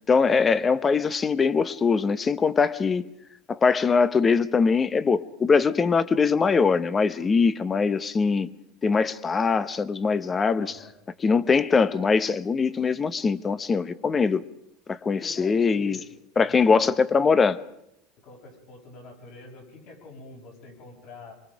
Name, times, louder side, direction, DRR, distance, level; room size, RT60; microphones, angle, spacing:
voice 1, 0.1-3.1 3.5-8.5 8.8-10.8 11.2-14.4 14.9-16.0 16.4-17.6, left 5 dB, 15° left, 0.8 m, -22 dB
voice 2, 10.6-10.9 15.1-16.1 16.4-16.7 18.2-21.3, left 3 dB, 50° left, 6.6 m, -46 dB
26.0 x 23.0 x 5.1 m
supercardioid pair, 160°, 0 cm